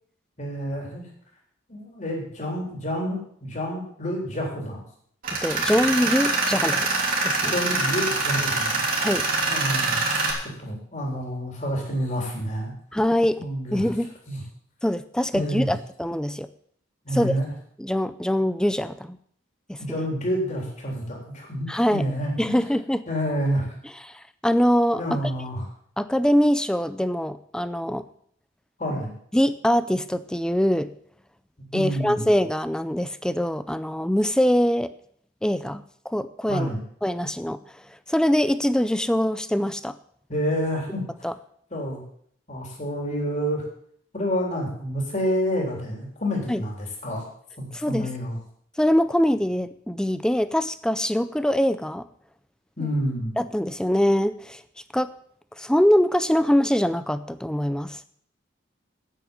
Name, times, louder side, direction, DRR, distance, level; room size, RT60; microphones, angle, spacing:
voice 1, 0.4-1.0 1.7-4.8 7.4-8.8 9.5-10.0 10.4-12.7 13.4-13.9 14.3-14.4 15.3-15.7 17.1-17.5 19.8-22.6 23.1-23.7 25.0-25.6 28.8-29.1 31.7-32.3 36.5-36.8 40.3-41.0 41.7-42.0 42.5-43.6 44.1-47.2 47.6-48.4 52.8-53.3, equal, 35° left, -1 dB, 3.6 m, -28 dB
Tools, 5.2-10.3, right 3 dB, 45° right, 3.2 m, -24 dB
voice 2, 5.4-6.9 7.2-7.5 9.0-9.3 12.9-14.1 14.8-16.5 17.1-17.3 17.8-19.2 19.7-20.0 21.7-22.0 22.4-23.0 24.1-25.0 26.0-28.1 29.3-30.9 31.7-34.9 35.4-36.7 37.0-37.6 38.1-40.0 41.2-41.3 46.5-46.6 47.7-48.1 48.8-52.1 52.8-52.9 53.4-54.6 54.9-55.1 55.6-58.1, equal, 5° left, 13 dB, 0.4 m, -23 dB
9.3 x 9.2 x 7.3 m, 0.64 s
head